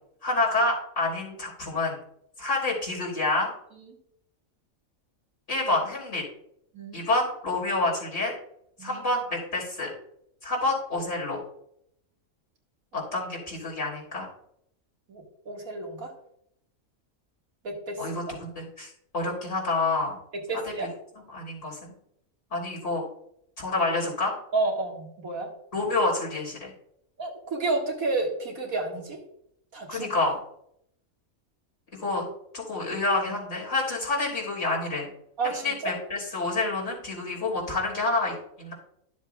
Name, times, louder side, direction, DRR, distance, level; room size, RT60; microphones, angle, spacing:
voice 1, 0.2-2.0 2.4-3.5 5.5-6.2 6.9-8.3 8.8-9.9 10.4-11.4 12.9-14.3 18.0-20.2 20.8-20.9 21.3-21.9 22.5-23.0 23.6-24.3 25.7-26.7 29.9-30.4 32.0-32.3 32.5-35.0 35.4-38.7, left 2 dB, 60° left, -4 dB, 3.9 m, -28 dB
voice 2, 6.7-7.0 8.8-9.0 12.9-13.0 15.1-16.1 17.6-18.2 20.3-20.9 24.5-25.5 27.2-29.2 29.7-30.1 35.4-35.9, right 3 dB, 90° right, 0 dB, 2.3 m, -31 dB
13.0 x 7.3 x 2.3 m, 0.72 s
omnidirectional pair, 1.4 m